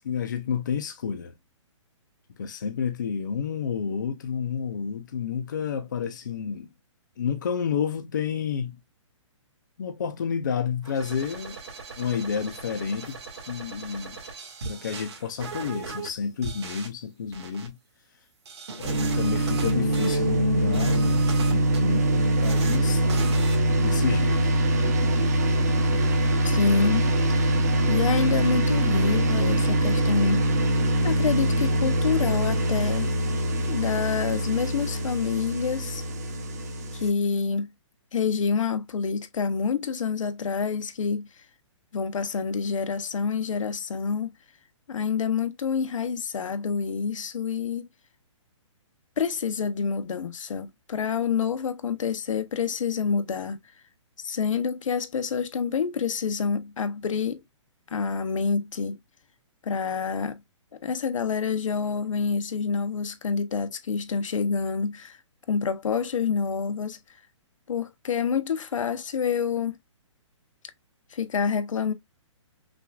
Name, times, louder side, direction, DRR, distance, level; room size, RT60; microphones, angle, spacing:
voice 1, 0.0-1.3 2.4-6.7 7.2-8.8 9.8-11.6 11.9-13.2 13.5-14.2 14.6-17.8 18.8-23.1 23.8-24.5, left 7 dB, 35° left, 0.5 m, -30 dB
sound 1, 10.8-16.1 16.4-16.9 17.3-17.7 18.5-20.2 20.6-21.8 22.3-22.8 23.1-23.6, right 4 dB, 55° right, 1.8 m, -38 dB
sound 2, 18.8-37.1, right 1 dB, 30° right, 0.8 m, -23 dB
voice 2, 26.4-27.1 27.9-30.5 31.0-33.1 33.6-36.0 36.9-37.7 38.1-41.3 41.9-44.3 44.9-47.9 49.2-53.6 54.2-57.4 57.9-59.0 59.6-60.4 60.8-65.2 65.5-67.0 67.7-69.8 71.1-71.9, left 6 dB, 80° left, 0.8 m, -27 dB
5.9 x 2.4 x 2.3 m
hypercardioid pair, 180°, 16 cm